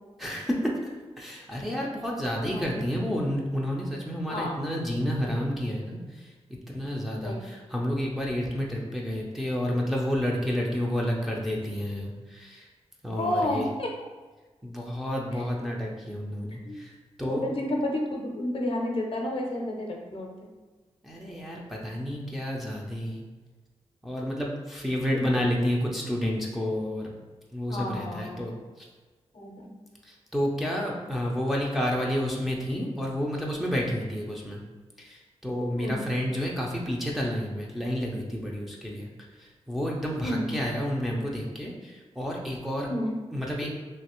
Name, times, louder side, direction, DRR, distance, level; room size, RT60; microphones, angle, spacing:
voice 1, 0.2-0.7 1.2-6.0 6.7-12.6 13.0-13.6 14.6-16.9 17.2-17.5 21.0-23.2 24.0-27.1 27.5-28.5 30.1-34.6 35.0-39.1 39.4-42.9 43.3-43.7, equal, ahead, -3 dB, 0.5 m, -30 dB
voice 2, 2.4-2.8 4.3-4.6 5.2-5.4 7.2-7.4 13.2-13.9 15.3-15.4 16.6-16.7 17.3-20.3 25.1-25.2 27.7-28.4 29.3-29.7 35.8-36.1 40.2-40.5 42.9-43.1, left 1 dB, 55° left, 0 dB, 0.6 m, -31 dB
3.1 x 2.8 x 3.0 m, 1.3 s
wide cardioid pair, 100°, 12 cm